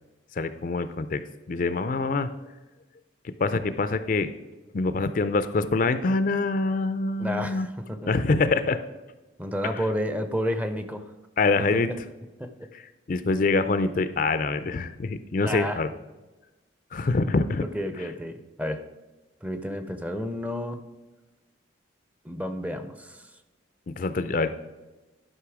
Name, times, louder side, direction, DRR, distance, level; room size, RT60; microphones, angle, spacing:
voice 1, 0.4-1.2 1.5-2.3 3.4-4.3 4.7-7.7 8.1-8.8 9.7-9.9 11.4-11.9 12.7-12.8 13.1-15.9 16.9-17.6 23.9-24.5, left 3 dB, 45° left, 12 dB, 0.4 m, -25 dB
voice 2, 7.2-8.0 9.4-11.0 11.7-11.8 12.4-12.5 15.4-15.8 17.7-18.8 19.4-20.8 22.2-23.3, equal, 10° right, 9 dB, 0.5 m, -30 dB
11.5 x 5.4 x 4.8 m, 1.1 s
head